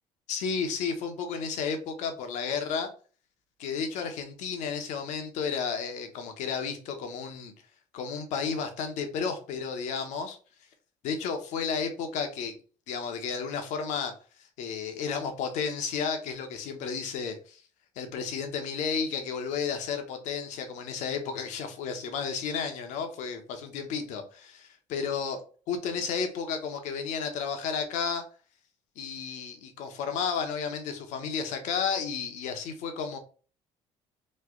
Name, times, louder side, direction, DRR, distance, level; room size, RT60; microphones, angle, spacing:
voice 1, 0.3-2.9 3.6-7.5 7.9-10.4 11.0-12.5 12.9-14.1 14.6-17.6 18.0-25.4 25.7-28.2 29.0-33.2, left 6 dB, 75° left, 6 dB, 0.8 m, -32 dB
3.2 x 2.2 x 3.6 m, 0.38 s
supercardioid pair, 90°, 13 cm